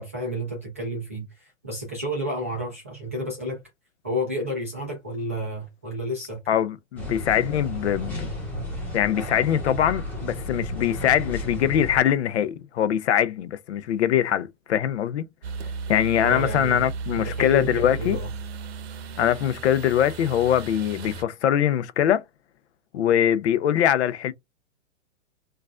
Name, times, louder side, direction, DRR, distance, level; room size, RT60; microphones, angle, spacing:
voice 1, 0.0-3.6 4.0-6.4 16.2-16.8 17.1-18.3, equal, 15° right, 0.3 m, -31 dB
voice 2, 6.5-8.3 8.9-15.2 15.9-18.2 19.2-22.2 22.9-24.3, left 10 dB, 60° left, 0.5 m, -22 dB
sound 1, 7.0-12.0, left 1 dB, 5° left, 1.1 m, -33 dB
sound 2, 15.4-21.2, right 4 dB, 50° right, 0.8 m, -34 dB
4.5 x 2.4 x 2.3 m
hypercardioid pair, 155°, 39 cm